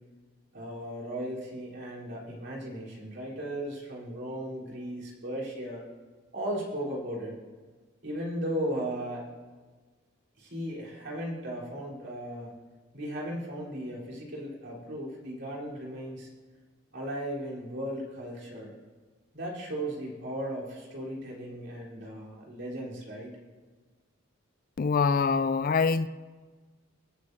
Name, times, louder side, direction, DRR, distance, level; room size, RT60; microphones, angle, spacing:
voice 1, 0.5-5.8 6.3-7.3 8.0-9.2 10.4-12.5 12.9-16.3 16.9-18.7 19.3-23.3, right 1 dB, 60° right, 4.0 m, -36 dB
voice 2, 24.8-26.1, left 5 dB, 45° left, 0.3 m, -24 dB
26.0 x 9.7 x 2.8 m
head